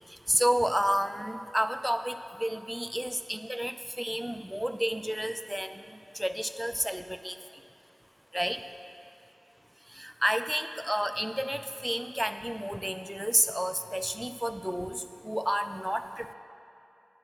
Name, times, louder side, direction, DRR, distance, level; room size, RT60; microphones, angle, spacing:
voice 1, 0.3-5.8 6.1-7.4 8.3-8.6 10.0-16.3, equal, 5° right, 9 dB, 0.4 m, -30 dB
10.5 x 6.3 x 3.8 m, 2.7 s
wide cardioid pair, 80°, 0 cm